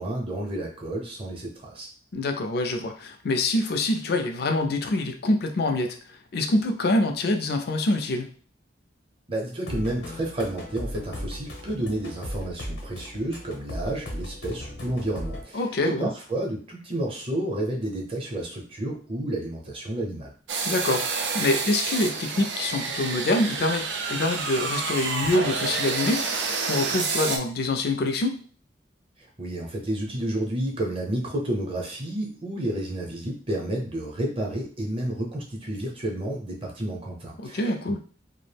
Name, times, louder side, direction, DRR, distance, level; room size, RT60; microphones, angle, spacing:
voice 1, 0.0-1.9 9.3-20.3 29.4-37.7, right 1 dB, 30° right, -1 dB, 0.6 m, -30 dB
voice 2, 2.1-6.0 6.3-8.3 15.5-16.1 20.6-28.3 37.4-38.0, left 2 dB, 60° left, 6 dB, 0.4 m, -25 dB
sound 1, 9.6-15.4, left 1 dB, 85° left, 0.8 m, -37 dB
sound 2, 20.5-27.4, right 4 dB, 80° right, 0.4 m, -29 dB
2.4 x 2.0 x 3.3 m, 0.42 s
head